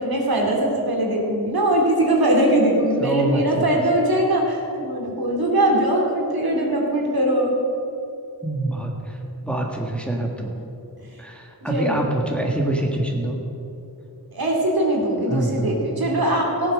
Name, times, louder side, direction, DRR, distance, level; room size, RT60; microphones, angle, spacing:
voice 1, 0.0-7.5 11.6-12.0 14.3-16.7, right 1 dB, 65° right, -1 dB, 2.7 m, -21 dB
voice 2, 3.0-3.8 8.4-10.5 11.2-13.4 15.3-15.8, right 1 dB, 5° left, 0 dB, 1.7 m, -25 dB
16.0 x 8.6 x 6.4 m, 2.8 s
wide cardioid pair, 80°, 39 cm